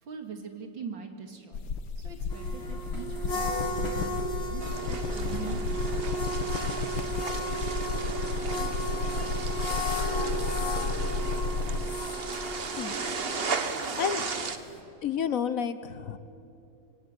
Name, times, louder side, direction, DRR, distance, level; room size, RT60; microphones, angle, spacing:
voice 1, 0.0-1.7 2.0-6.3 13.4-13.9, right 6 dB, 75° right, 4 dB, 3.0 m, -43 dB
sound 1, 1.5-11.9, left 4 dB, 85° left, 2.0 m, -32 dB
sound 2, 2.3-14.8, equal, 30° left, 3.4 m, -35 dB
sound 3, 4.6-14.6, right 4 dB, 35° right, 1.2 m, -36 dB
voice 2, 15.0-16.2, left 7 dB, 50° left, 12 dB, 1.3 m, -30 dB
25.5 x 22.5 x 9.7 m, 2.6 s
omnidirectional pair, 2.1 m